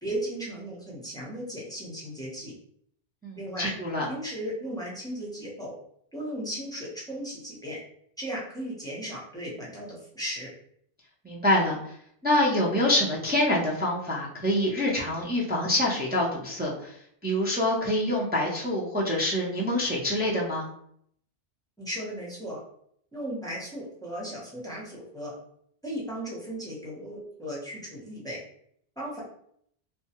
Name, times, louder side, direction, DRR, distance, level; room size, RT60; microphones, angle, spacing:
voice 1, 0.0-2.5 3.4-3.7 4.1-5.7 6.1-7.8 8.2-10.5 21.8-22.6 23.1-25.3 25.8-28.4 29.0-29.2, equal, 5° left, -6 dB, 0.7 m, -36 dB
voice 2, 3.2-4.0 11.2-11.8 12.2-16.9 17.2-20.7, left 1 dB, 15° right, -4 dB, 0.3 m, -26 dB
2.9 x 2.2 x 2.8 m, 0.67 s
omnidirectional pair, 1.1 m